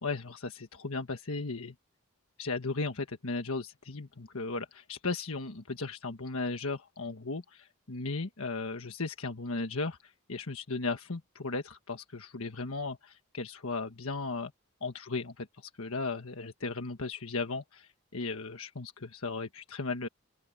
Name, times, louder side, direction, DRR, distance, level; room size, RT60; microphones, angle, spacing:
voice 1, 0.0-1.7 2.4-14.5 14.8-20.1, left 3 dB, 75° left, 1.4 m, -36 dB
open air
head